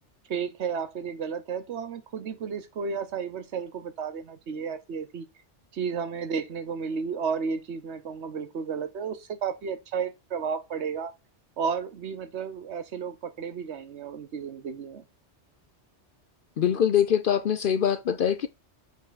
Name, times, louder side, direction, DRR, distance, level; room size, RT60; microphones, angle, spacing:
voice 1, 0.3-5.3 5.7-11.1 11.6-15.0, right 6 dB, 75° right, 1.1 m, -32 dB
voice 2, 16.6-18.5, left 9 dB, 60° left, 0.6 m, -23 dB
7.3 x 3.5 x 4.0 m
omnidirectional pair, 1.2 m